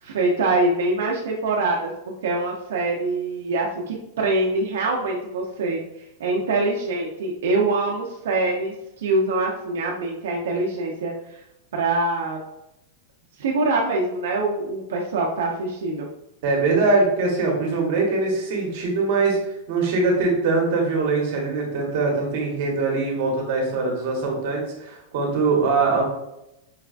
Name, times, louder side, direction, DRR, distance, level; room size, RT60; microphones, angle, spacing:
voice 1, 0.0-1.9 2.2-5.8 6.2-11.1 11.7-12.4 13.4-16.1, right 2 dB, 85° right, -1 dB, 0.6 m, -24 dB
voice 2, 16.4-19.4 19.7-26.0, right 3 dB, 50° right, -1 dB, 1.0 m, -22 dB
4.7 x 2.3 x 2.4 m, 0.85 s
supercardioid pair, 170°, 0 cm